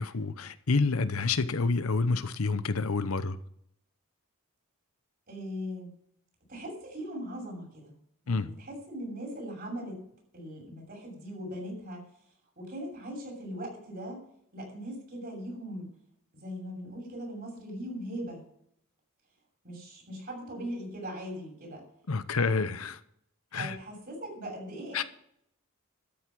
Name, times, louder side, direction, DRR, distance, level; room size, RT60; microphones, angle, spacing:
voice 1, 0.0-3.4 8.3-8.5 22.1-23.0 23.5-23.8 24.9-25.0, left 4 dB, 75° left, 0.8 m, -28 dB
voice 2, 5.3-5.9 6.5-7.9 8.2-10.0 10.3-12.1 12.6-14.2 14.5-15.9 16.4-18.4 19.6-21.8 22.4-22.5 23.5-25.1, equal, 45° right, 7.0 m, -39 dB
13.0 x 8.3 x 6.1 m
head